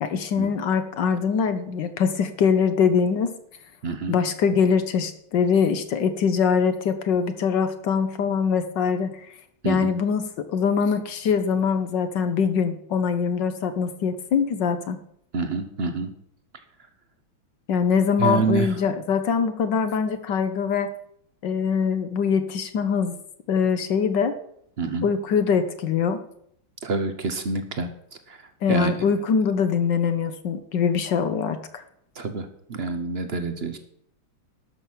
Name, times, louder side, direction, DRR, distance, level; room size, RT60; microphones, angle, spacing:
voice 1, 0.0-3.3 4.1-9.1 9.6-10.2 10.5-15.0 17.7-20.9 21.4-23.1 23.5-24.4 25.0-26.2 28.6-31.8, left 6 dB, 65° left, 10 dB, 1.4 m, -23 dB
voice 2, 3.8-4.2 9.6-10.0 15.3-16.1 18.2-18.8 24.8-25.1 26.8-27.9 28.3-29.0 32.1-33.8, right 4 dB, 50° right, 8 dB, 0.7 m, -27 dB
12.5 x 6.2 x 7.2 m, 0.70 s
omnidirectional pair, 2.4 m